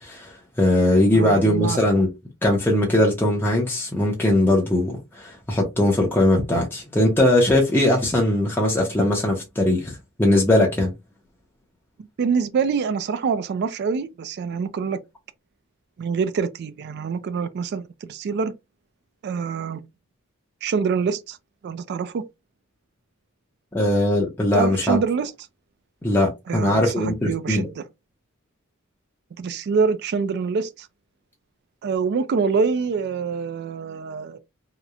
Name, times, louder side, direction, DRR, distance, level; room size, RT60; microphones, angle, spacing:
voice 1, 0.0-2.1 2.4-10.9 23.7-25.0 26.0-27.7, left 1 dB, 10° left, 0.5 m, -20 dB
voice 2, 1.1-1.8 12.2-15.0 16.0-18.5 19.2-19.8 20.6-21.4 21.6-22.2 24.5-25.3 26.5-27.8 29.4-30.9 31.8-34.4, right 5 dB, 55° right, 0.3 m, -25 dB
2.8 x 2.0 x 2.3 m
head